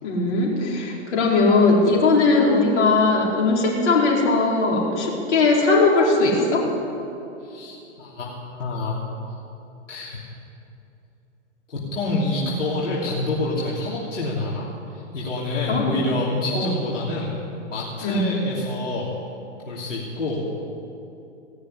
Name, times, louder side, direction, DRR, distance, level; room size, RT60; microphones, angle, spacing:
voice 1, 0.0-6.7 15.7-15.9 16.5-16.7 18.0-18.2, left 3 dB, 65° left, -3 dB, 4.4 m, -19 dB
voice 2, 7.4-9.0 9.9-10.2 11.7-17.3 17.7-19.2 19.7-20.7, left 2 dB, 85° left, -6 dB, 3.0 m, -27 dB
18.0 x 6.6 x 9.8 m, 2.8 s
hypercardioid pair, 135°, 37 cm